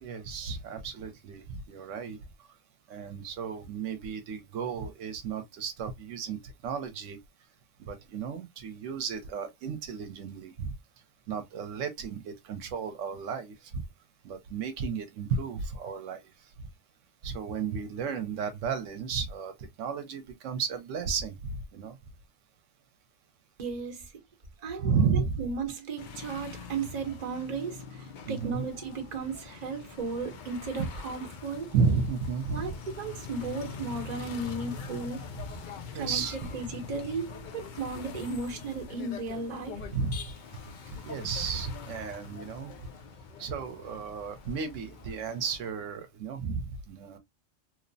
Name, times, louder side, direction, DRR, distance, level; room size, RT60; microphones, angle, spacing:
voice 1, 0.0-2.5 2.9-7.2 7.8-10.7 11.3-13.8 14.2-16.3 16.6-16.7 17.2-22.0 24.8-25.4 28.3-28.6 30.8-30.9 31.7-32.8 35.9-36.5 39.9-40.4 40.9-42.7 43.4-47.2, right 5 dB, 80° right, 0.9 m, -33 dB
voice 2, 23.6-24.1 24.6-31.7 32.5-35.2 35.9-39.8, right 4 dB, 40° right, 0.8 m, -35 dB
sound 1, 26.0-45.7, left 5 dB, 65° left, 0.5 m, -44 dB
2.9 x 2.0 x 2.5 m
omnidirectional pair, 1.3 m